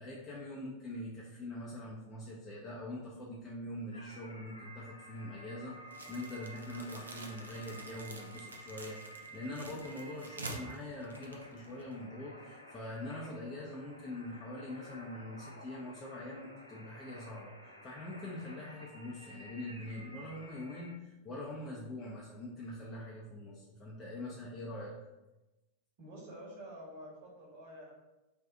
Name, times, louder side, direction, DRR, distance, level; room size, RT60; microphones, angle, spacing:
voice 1, 0.0-24.9, left 1 dB, 20° left, -5 dB, 0.5 m, -43 dB
sound 1, 3.9-20.9, equal, 85° left, 0.4 m, -52 dB
sound 2, 5.9-12.0, right 2 dB, 75° right, 0.4 m, -48 dB
voice 2, 26.0-27.9, equal, 50° right, -4 dB, 1.2 m, -48 dB
2.6 x 2.4 x 3.6 m, 1.0 s
figure-of-eight pair, 90°, 0 cm